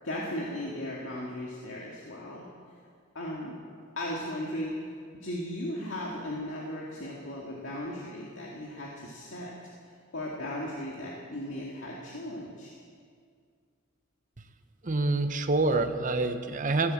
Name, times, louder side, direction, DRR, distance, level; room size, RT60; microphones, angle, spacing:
voice 1, 0.0-2.5 3.1-3.6 4.0-9.5 10.1-12.7, left 1 dB, 70° left, -4 dB, 2.0 m, -36 dB
voice 2, 14.8-16.9, right 2 dB, 40° right, 8 dB, 0.9 m, -26 dB
16.0 x 12.0 x 7.3 m, 2.2 s
head